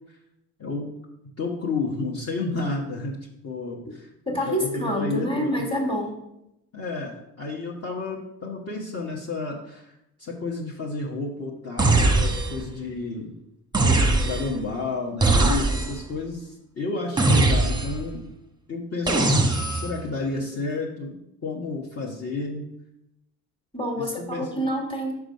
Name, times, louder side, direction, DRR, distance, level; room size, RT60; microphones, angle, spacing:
voice 1, 0.6-0.9 1.4-3.2 3.4-4.1 4.5-4.7 5.0-5.6 6.7-13.3 13.8-18.2 18.7-19.3 19.7-21.2 21.4-22.7 24.0-24.7, left 3 dB, 35° left, -3 dB, 1.2 m, -31 dB
voice 2, 4.3-6.2 23.7-25.1, equal, 15° left, 1 dB, 1.8 m, -27 dB
sound 1, 11.8-12.7 13.7-14.6 15.2-16.1 17.2-18.1 19.1-20.0, right 2 dB, 10° right, 0.9 m, -21 dB
5.0 x 4.7 x 5.2 m, 0.85 s
supercardioid pair, 75°, 41 cm